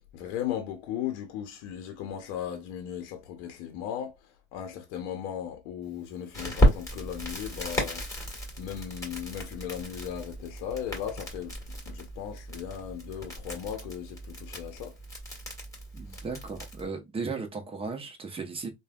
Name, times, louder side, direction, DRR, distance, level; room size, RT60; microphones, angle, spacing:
voice 1, 0.0-11.6 11.9-15.0 16.1-16.2, left 9 dB, 65° left, 0.7 m, -37 dB
Crackle, 6.3-16.9, equal, 10° left, 1.5 m, -32 dB
voice 2, 15.9-18.7, right 4 dB, 15° right, 0.8 m, -36 dB
3.3 x 2.3 x 2.3 m
hypercardioid pair, 95°, 35 cm